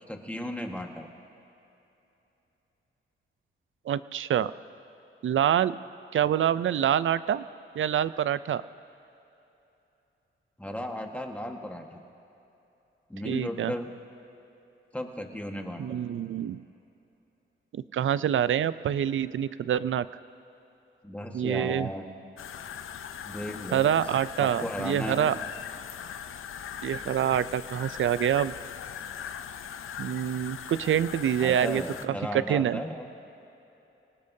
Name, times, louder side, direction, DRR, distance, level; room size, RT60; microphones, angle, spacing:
voice 1, 0.1-1.1 10.6-12.0 13.1-13.9 14.9-16.0 21.0-22.0 23.2-24.0 24.4-25.4 31.4-33.1, left 1 dB, 5° left, 2 dB, 1.5 m, -35 dB
voice 2, 3.9-4.5 5.2-5.8 6.1-7.5 7.8-8.6 13.2-13.7 15.8-16.6 17.7-20.1 21.3-21.9 23.7-25.4 26.8-28.5 30.0-32.8, right 10 dB, 70° right, 16 dB, 0.5 m, -26 dB
sound 1, 22.4-32.1, left 8 dB, 80° left, 0.6 m, -40 dB
24.5 x 18.5 x 2.8 m, 2.9 s
cardioid pair, 75°, 21 cm